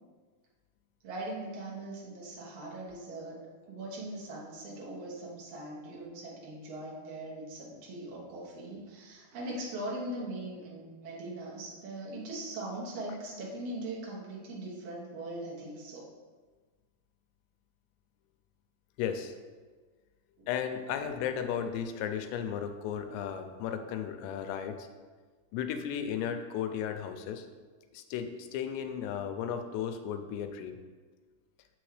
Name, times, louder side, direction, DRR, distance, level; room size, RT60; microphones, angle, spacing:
voice 1, 1.0-3.4 3.7-16.1 20.4-20.5, right 1 dB, 75° right, -5 dB, 1.4 m, -40 dB
voice 2, 19.0-19.3 20.5-24.9 25.5-27.5 27.9-30.8, left 8 dB, 90° left, 7 dB, 2.8 m, -35 dB
7.0 x 6.4 x 3.2 m, 1.4 s
omnidirectional pair, 4.9 m